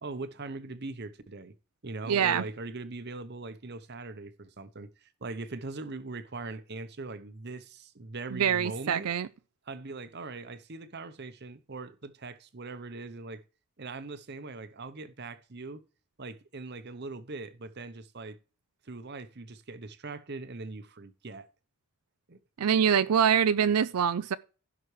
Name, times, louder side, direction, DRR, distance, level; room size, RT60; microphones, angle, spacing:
voice 1, 0.0-1.5 1.8-9.1 9.7-13.4 13.8-15.8 16.2-18.4 18.8-21.5 22.3-22.4, right 3 dB, 45° right, 0.8 m, -41 dB
voice 2, 2.1-2.4 8.3-9.3 22.6-24.4, right 8 dB, 85° right, 0.5 m, -24 dB
16.0 x 6.0 x 3.2 m
head